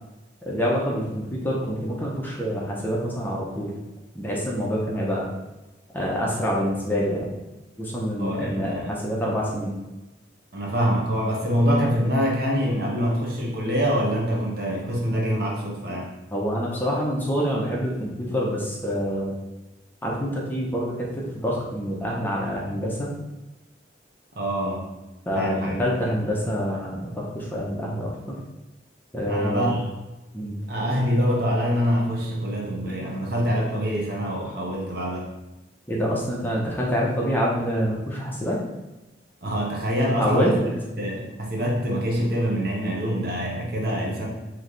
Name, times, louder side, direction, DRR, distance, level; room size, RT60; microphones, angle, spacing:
voice 1, 0.4-3.8 4.1-5.3 5.9-7.3 7.8-9.8 16.3-19.3 20.0-23.1 25.3-28.4 29.1-29.7 30.3-30.6 35.9-38.6 40.2-40.6, equal, 10° left, -4 dB, 0.7 m, -26 dB
voice 2, 8.2-8.9 10.5-16.1 24.4-24.8 25.3-25.8 29.3-29.8 30.7-35.3 39.4-40.7 41.0-44.3, equal, 55° right, -2 dB, 1.0 m, -25 dB
3.2 x 3.1 x 3.9 m, 1.1 s
head